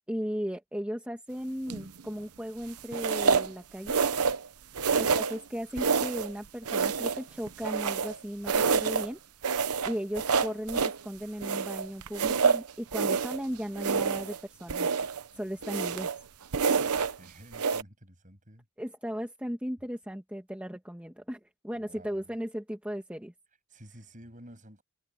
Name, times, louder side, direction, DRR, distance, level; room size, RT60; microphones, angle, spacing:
voice 1, 0.1-4.0 4.9-9.2 9.8-14.9 15.3-16.1 18.8-23.3, equal, 5° right, 1.3 m, -36 dB
sound 1, 1.7-2.0 2.9-3.5 3.9-4.5 4.8-5.4 5.8-6.3 6.7-8.2 8.5-9.1 9.4-11.0 11.4-13.4 13.8-14.4 14.7-15.2 15.6-16.2 16.5-17.2 17.5-17.8, right 5 dB, 85° right, 0.9 m, -27 dB
voice 2, 17.2-18.7 21.7-22.3 23.7-24.8, right 1 dB, 35° right, 8.0 m, -51 dB
head